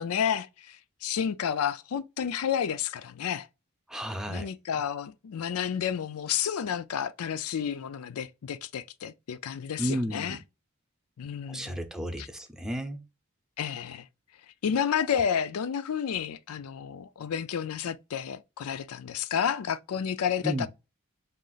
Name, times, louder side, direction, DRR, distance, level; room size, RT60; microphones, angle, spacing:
voice 1, 0.0-3.5 4.3-10.4 11.2-11.8 12.2-12.3 13.6-14.1 14.6-20.7, left 8 dB, 90° left, 0.4 m, -31 dB
voice 2, 3.9-4.5 9.8-10.4 11.5-13.0 20.4-20.7, equal, 5° right, 0.6 m, -32 dB
4.9 x 2.4 x 3.8 m
head